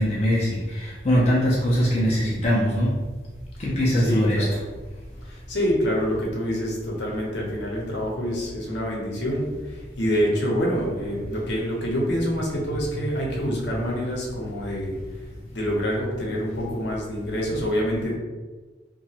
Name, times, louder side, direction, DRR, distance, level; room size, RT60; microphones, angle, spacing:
voice 1, 0.0-2.9 3.6-4.6 12.4-12.5 12.7-13.1, equal, 35° left, -6 dB, 0.5 m, -22 dB
voice 2, 4.0-4.6 5.2-15.0 15.5-18.2, equal, 70° left, -2 dB, 0.7 m, -26 dB
2.9 x 2.2 x 2.8 m, 1.3 s
head